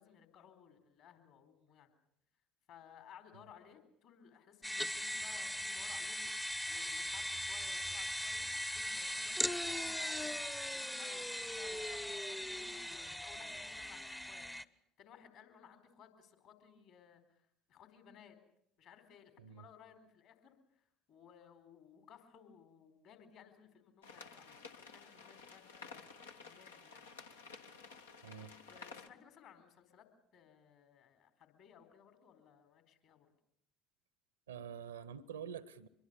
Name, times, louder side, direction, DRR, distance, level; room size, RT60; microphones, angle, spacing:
voice 1, 0.0-1.9 2.7-10.4 10.7-14.5 15.0-18.4 18.8-26.0 26.4-27.1 28.4-30.1 30.3-33.3, left 8 dB, 55° left, 7 dB, 4.1 m, -60 dB
sound 1, 4.6-14.6, left 1 dB, 5° left, 0.8 m, -39 dB
sound 2, 24.0-29.1, left 5 dB, 80° left, 1.4 m, -53 dB
voice 2, 28.2-28.5 34.5-35.9, right 8 dB, 80° right, 19 dB, 1.0 m, -47 dB
24.5 x 22.0 x 7.0 m, 0.73 s
figure-of-eight pair, 60°, 0 cm